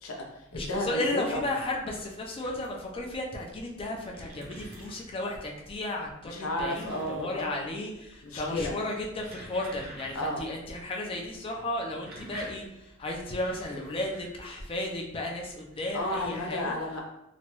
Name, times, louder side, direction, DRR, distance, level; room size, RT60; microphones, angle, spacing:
voice 1, 0.0-1.4 6.2-7.6 8.2-8.7 10.1-10.4 15.9-17.0, left 1 dB, 85° left, -1 dB, 0.7 m, -32 dB
voice 2, 0.5-16.8, left 1 dB, 25° left, 0 dB, 0.4 m, -34 dB
sound 1, 1.1-2.9 3.6-5.3 6.3-7.7 8.0-8.5 8.9-10.6 10.9-11.0 11.7-14.8 15.6-16.5, right 1 dB, 50° right, 0.8 m, -49 dB
2.9 x 2.2 x 2.9 m, 0.86 s
head